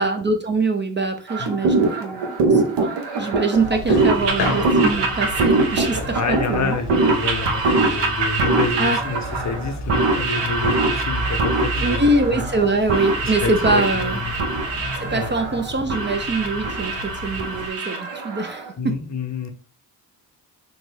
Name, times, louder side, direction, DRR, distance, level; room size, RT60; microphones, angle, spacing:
voice 1, 0.0-6.8 8.8-9.0 11.8-14.2 15.0-19.0, right 2 dB, 25° right, 5 dB, 0.5 m, -23 dB
sound 1, 1.3-18.7, right 3 dB, 60° right, 0.9 m, -23 dB
sound 2, 3.5-17.7, left 1 dB, 60° left, 1.0 m, -32 dB
voice 2, 6.1-12.4 13.2-14.3 15.1-15.3 18.8-19.5, left 4 dB, 35° left, 6 dB, 0.7 m, -28 dB
3.5 x 2.1 x 3.3 m, 0.40 s
hypercardioid pair, 40°, 49 cm